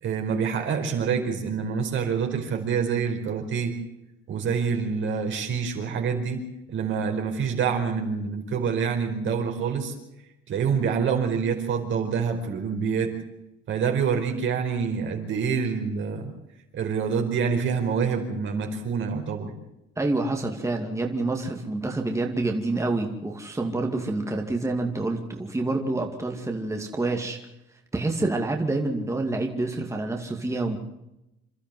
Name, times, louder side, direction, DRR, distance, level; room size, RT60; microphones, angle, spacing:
voice 1, 0.0-3.8 4.3-6.4 6.7-9.9 10.5-13.1 13.7-16.3 16.7-19.5, right 6 dB, 65° right, 3 dB, 4.7 m, -26 dB
voice 2, 20.0-27.4 27.9-30.8, right 2 dB, 15° right, 2 dB, 2.4 m, -27 dB
27.5 x 13.0 x 7.7 m, 0.90 s
cardioid pair, 105°, 21 cm